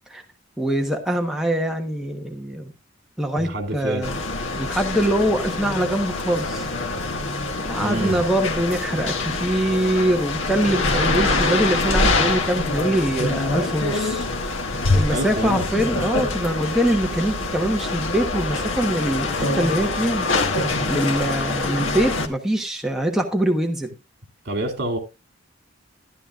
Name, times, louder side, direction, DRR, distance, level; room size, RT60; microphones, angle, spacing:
voice 1, 0.6-2.7 3.2-4.2 4.5-6.7 7.7-14.2 14.9-23.9, right 1 dB, ahead, 1.1 m, -23 dB
voice 2, 3.4-4.0 7.8-8.2 15.0-16.3 24.4-25.0, right 1 dB, 55° right, 2.7 m, -28 dB
sound 1, 4.0-22.3, left 2 dB, 85° left, 1.5 m, -25 dB
13.0 x 11.0 x 2.4 m
head